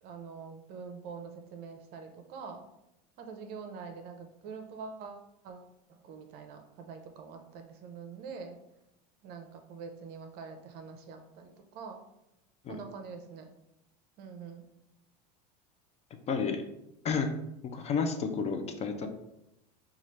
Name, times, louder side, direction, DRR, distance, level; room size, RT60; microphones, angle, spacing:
voice 1, 0.0-2.7 3.2-8.6 9.2-12.1 12.7-13.5 14.2-14.7, right 5 dB, 50° right, 5 dB, 0.6 m, -45 dB
voice 2, 16.3-16.6 17.0-17.3 17.7-19.1, left 5 dB, 30° left, 5 dB, 0.4 m, -31 dB
4.0 x 2.4 x 3.1 m, 0.86 s
hypercardioid pair, 100°, 21 cm